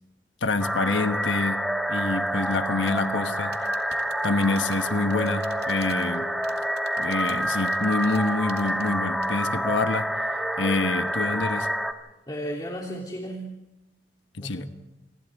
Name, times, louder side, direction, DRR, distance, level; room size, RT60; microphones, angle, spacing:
voice 1, 0.4-3.6 4.2-6.3 7.0-10.1 10.6-11.7 14.4-14.7, left 3 dB, 85° left, 1.2 m, -26 dB
sound 1, 0.6-11.9, equal, ahead, 1.5 m, -28 dB
sound 2, 2.8-3.1 3.5-6.2 6.4-8.9 9.2-9.3, right 7 dB, 60° right, 2.5 m, -47 dB
voice 2, 12.3-13.5 14.4-14.7, equal, 25° left, 3.2 m, -34 dB
28.5 x 25.5 x 3.6 m
head